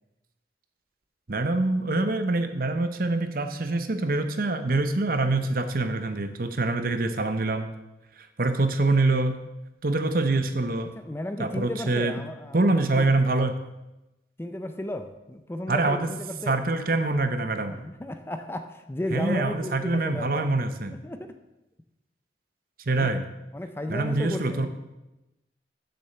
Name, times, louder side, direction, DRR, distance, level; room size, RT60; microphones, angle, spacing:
voice 1, 1.3-7.7 8.4-9.4 9.8-10.9 11.4-12.2 12.5-13.6 15.7-16.1 16.5-17.8 19.1-20.9 22.9-23.2 23.9-24.7, right 2 dB, 50° right, 9 dB, 0.8 m, -25 dB
voice 2, 10.9-13.1 14.4-16.6 17.7-20.5 20.9-21.4 23.0-23.1 23.5-24.7, left 1 dB, 15° left, 8 dB, 0.5 m, -34 dB
7.7 x 6.8 x 6.7 m, 0.99 s
head